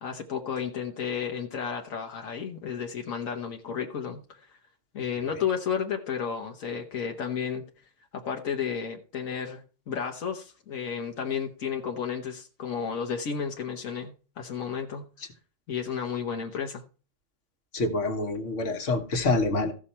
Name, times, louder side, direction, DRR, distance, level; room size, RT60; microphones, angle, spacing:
voice 1, 0.0-4.6 4.9-7.6 8.1-15.1 15.7-16.8, left 7 dB, 85° left, 3 dB, 1.4 m, -32 dB
voice 2, 17.7-19.7, left 2 dB, 65° left, 7 dB, 1.7 m, -26 dB
14.5 x 6.3 x 4.3 m, 0.38 s
omnidirectional pair, 1.4 m